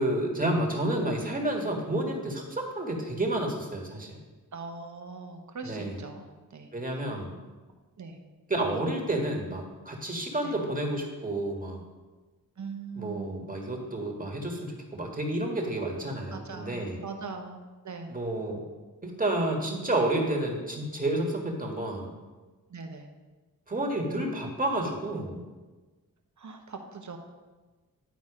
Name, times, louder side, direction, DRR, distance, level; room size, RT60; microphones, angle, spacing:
voice 1, 0.0-4.2 5.6-6.0 6.7-7.4 8.5-11.8 13.0-17.0 18.1-18.6 19.0-22.1 23.7-25.4, right 1 dB, 25° right, 0 dB, 1.8 m, -30 dB
voice 2, 4.5-7.1 8.0-8.2 10.4-10.6 12.6-13.4 16.3-18.1 22.7-23.1 26.4-27.2, right 4 dB, 55° right, 4 dB, 1.1 m, -41 dB
10.5 x 4.1 x 4.9 m, 1.3 s
cardioid pair, 60°, 34 cm